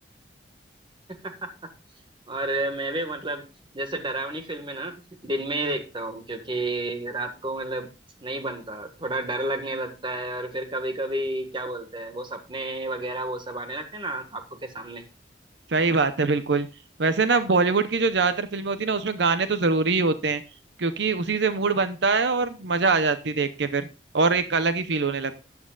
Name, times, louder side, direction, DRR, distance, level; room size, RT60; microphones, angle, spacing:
voice 1, 1.1-1.7 2.3-3.5 3.7-5.0 5.2-7.9 8.2-15.0, right 1 dB, 30° right, 6 dB, 1.7 m, -31 dB
voice 2, 15.7-16.7 17.0-20.4 20.8-23.9 24.1-25.3, right 4 dB, 75° right, 11 dB, 0.8 m, -23 dB
13.5 x 9.7 x 2.4 m, 0.31 s
head